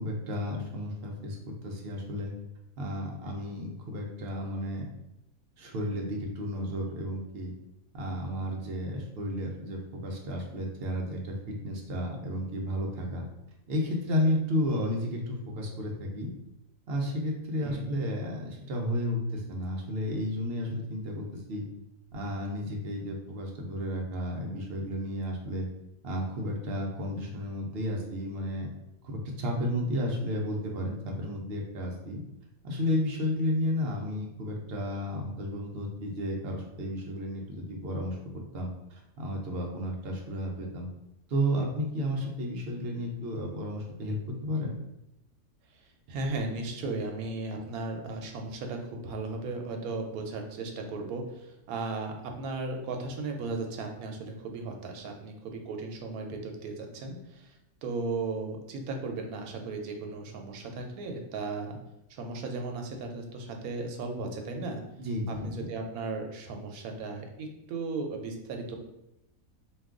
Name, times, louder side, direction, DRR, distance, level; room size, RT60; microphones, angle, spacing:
voice 1, 0.0-2.3 2.8-4.8 5.6-7.5 7.9-13.3 13.7-16.3 16.9-21.6 22.1-25.7 26.0-28.7 29.0-32.2 32.6-40.9 41.3-44.7 65.0-65.5, equal, 60° right, 0 dB, 0.6 m, -32 dB
voice 2, 46.1-61.8 62.1-64.8 65.3-68.8, right 3 dB, 85° right, 3 dB, 1.1 m, -36 dB
2.5 x 2.3 x 3.6 m, 0.85 s
omnidirectional pair, 1.5 m